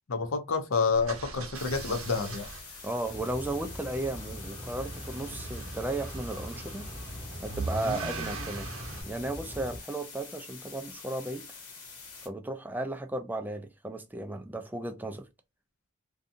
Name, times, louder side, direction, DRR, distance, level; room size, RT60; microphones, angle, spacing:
voice 1, 0.1-2.5, left 4 dB, 65° left, 0.6 m, -28 dB
sound 1, 0.9-9.0, right 3 dB, 80° right, 0.8 m, -41 dB
sound 2, 1.5-12.3, left 5 dB, 85° left, 1.1 m, -47 dB
voice 2, 2.8-6.9 7.4-8.7 9.1-11.5 12.2-15.3, right 2 dB, 10° right, 0.3 m, -35 dB
Rain, 3.0-9.8, equal, 30° left, 1.0 m, -42 dB
2.6 x 2.3 x 2.5 m
head